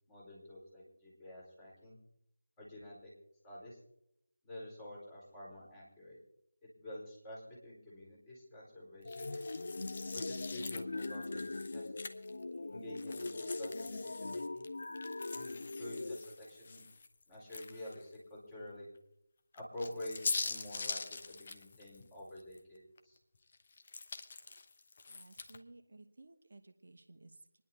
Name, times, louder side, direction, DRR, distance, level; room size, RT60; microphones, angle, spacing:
voice 1, 0.1-2.0 2.6-3.1 3.4-3.8 4.4-6.2 6.8-9.4 10.1-11.9 12.7-14.7 15.3-16.8 17.3-18.9 19.5-23.2, left 1 dB, 15° left, -6 dB, 4.6 m, -48 dB
sound 1, 9.0-16.2, left 2 dB, 60° left, 0.6 m, -41 dB
sound 2, 9.1-12.4 12.9-18.1 18.6-18.7 19.5-22.6 23.0-25.6, left 4 dB, 40° left, 0.9 m, -44 dB
voice 2, 25.1-27.6, right 2 dB, 55° right, 5 dB, 1.1 m, -57 dB
26.5 x 10.5 x 2.8 m, 0.78 s
figure-of-eight pair, 160°, 0 cm